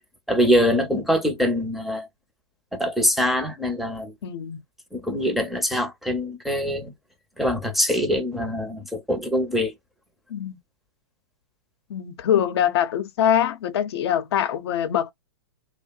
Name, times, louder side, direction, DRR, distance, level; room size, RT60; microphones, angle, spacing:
voice 1, 0.3-2.1 2.7-4.1 4.9-6.9 7.4-9.7, equal, ahead, 0.6 m, -23 dB
voice 2, 4.2-4.6 10.3-10.6 11.9-15.1, left 10 dB, 60° left, 0.7 m, -23 dB
2.7 x 2.0 x 2.2 m
hypercardioid pair, 135°, 15 cm